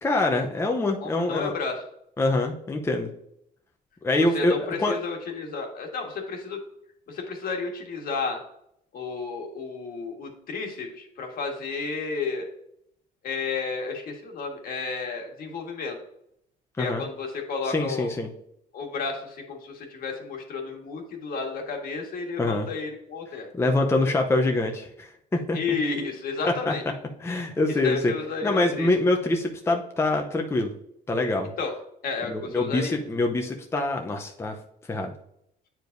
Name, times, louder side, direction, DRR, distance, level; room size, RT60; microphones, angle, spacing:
voice 1, 0.0-1.5 2.2-3.1 4.0-4.9 16.8-17.0 17.6-18.3 22.4-22.7 23.5-25.6 26.7-26.8 27.2-28.1 28.4-30.7 31.1-31.5 32.3-34.6 34.9-35.1, left 2 dB, 15° left, 2 dB, 0.7 m, -25 dB
voice 2, 1.0-1.8 4.3-6.6 7.1-8.4 8.9-12.5 13.2-16.0 16.8-18.1 18.7-23.5 25.5-26.8 27.7-28.9 31.6-31.7 32.0-33.0, left 4 dB, 60° left, 2 dB, 1.7 m, -32 dB
8.8 x 4.8 x 2.6 m, 0.75 s
cardioid pair, 110°, 17 cm